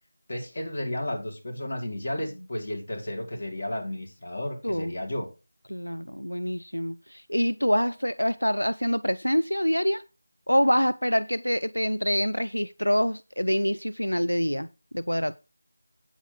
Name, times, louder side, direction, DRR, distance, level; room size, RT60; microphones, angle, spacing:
voice 1, 0.3-5.3, left 1 dB, 40° left, 4.1 m, -33 dB
voice 2, 5.7-10.0 10.5-14.7 14.9-15.4, equal, 85° left, 0.5 m, -26 dB
8.7 x 8.6 x 4.8 m
figure-of-eight pair, 165°, 0 cm